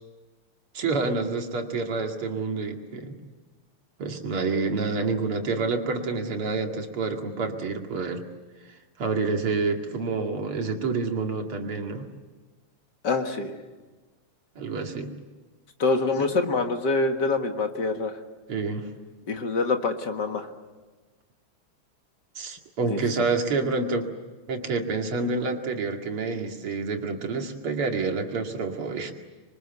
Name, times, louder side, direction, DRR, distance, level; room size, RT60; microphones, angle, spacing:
voice 1, 0.7-3.2 4.0-8.2 9.0-12.1 14.5-15.1 16.2-16.3 18.5-18.9 22.4-24.1 24.5-29.1, right 4 dB, 80° right, 3 dB, 3.2 m, -28 dB
voice 2, 13.0-13.6 15.8-18.1 19.3-20.5 22.8-23.0, left 3 dB, 55° left, 6 dB, 2.2 m, -25 dB
26.5 x 23.5 x 8.1 m, 1.3 s
omnidirectional pair, 2.4 m